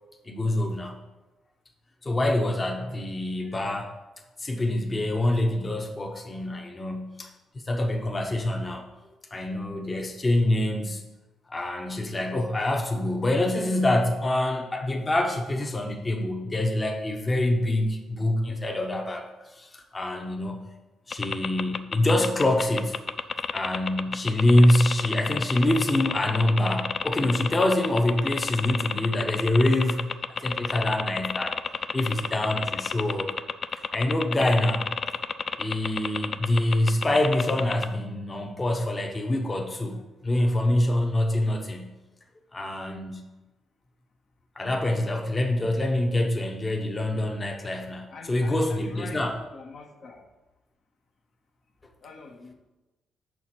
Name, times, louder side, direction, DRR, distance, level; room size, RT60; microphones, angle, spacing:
voice 1, 0.2-1.0 2.0-3.9 4.4-7.3 7.6-8.8 9.3-11.0 11.5-19.3 19.5-20.6 21.1-23.0 23.5-31.6 31.9-33.3 33.9-34.9 35.6-40.0 40.2-41.9 42.5-43.2 44.6-49.3, left 1 dB, 25° left, 2 dB, 0.7 m, -25 dB
sound 1, 21.1-37.8, left 5 dB, 40° left, 0.3 m, -30 dB
voice 2, 48.1-50.3 52.0-52.5, left 4 dB, 55° left, 3 dB, 0.7 m, -45 dB
5.7 x 4.6 x 4.3 m, 1.1 s
cardioid pair, 90°, 0 cm